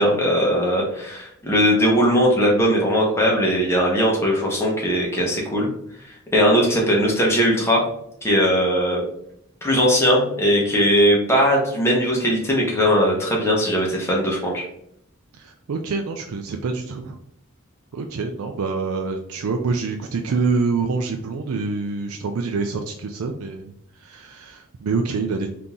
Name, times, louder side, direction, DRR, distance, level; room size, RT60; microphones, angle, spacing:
voice 1, 0.0-5.7 6.3-7.8 8.2-9.0 9.6-14.6, equal, 10° left, -3 dB, 1.1 m, -19 dB
voice 2, 15.3-17.2 17.9-23.7 24.0-25.5, right 4 dB, 85° right, 3 dB, 0.4 m, -26 dB
3.8 x 2.8 x 3.6 m, 0.73 s
head